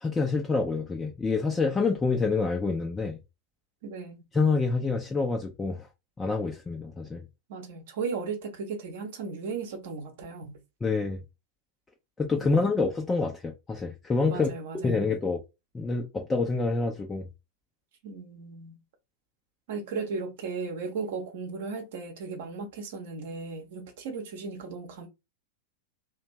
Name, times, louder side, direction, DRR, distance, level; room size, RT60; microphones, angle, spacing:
voice 1, 0.0-3.2 4.3-5.9 6.2-7.2 10.8-11.2 12.2-14.5 14.8-15.4 15.7-17.3, left 4 dB, 15° left, 0.4 m, -27 dB
voice 2, 3.8-4.2 7.5-10.6 12.4-12.7 14.3-15.1 18.0-18.8 19.7-25.1, right 4 dB, 55° right, 0.8 m, -36 dB
2.5 x 2.2 x 3.0 m
figure-of-eight pair, 90°, 0 cm